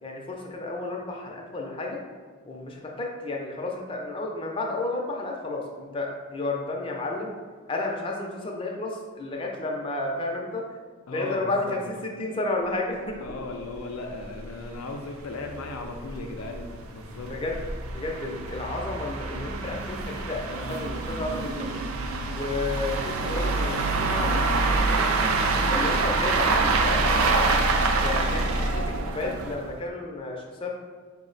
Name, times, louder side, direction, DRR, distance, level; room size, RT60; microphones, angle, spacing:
voice 1, 0.0-2.0 2.4-7.4 7.7-10.6 11.1-13.2 17.3-17.6 17.9-21.7 22.3-25.1 25.7-27.6 28.0-30.7, left 2 dB, 25° left, 0 dB, 0.4 m, -32 dB
voice 2, 11.1-11.8 13.2-17.4 28.2-28.7, left 3 dB, 85° left, 2 dB, 0.4 m, -37 dB
sound 1, 13.3-13.4 13.7-13.8 14.2-14.3 14.6-14.7 15.3-29.7, right 3 dB, 80° right, 0.4 m, -26 dB
4.8 x 2.1 x 3.8 m, 1.5 s
head